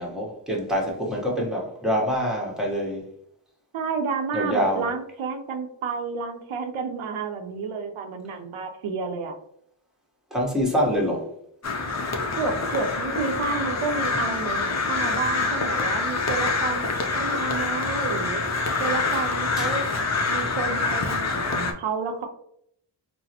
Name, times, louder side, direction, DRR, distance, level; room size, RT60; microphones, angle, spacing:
voice 1, 0.0-3.0 4.3-4.8 10.3-11.2 19.6-19.7, equal, ahead, -2 dB, 1.1 m, -25 dB
voice 2, 3.7-9.4 12.3-18.4 18.8-19.8 20.3-22.3, right 4 dB, 85° right, 5 dB, 0.6 m, -30 dB
Crow, 11.6-21.7, left 3 dB, 35° left, 0.6 m, -26 dB
3.9 x 2.0 x 2.8 m, 0.70 s
cardioid pair, 65°, 47 cm